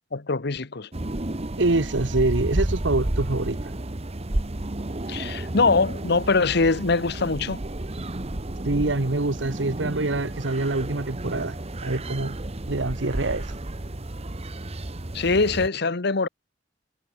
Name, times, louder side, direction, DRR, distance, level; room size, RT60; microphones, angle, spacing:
voice 1, 0.1-0.9 5.1-7.6 15.1-16.3, left 3 dB, 60° left, 1.1 m, -23 dB
sound 1, 0.9-15.7, right 1 dB, 35° right, 1.2 m, -31 dB
voice 2, 1.6-3.6 8.6-11.6 11.8-12.4 12.7-13.5, right 2 dB, 70° right, 1.3 m, -25 dB
head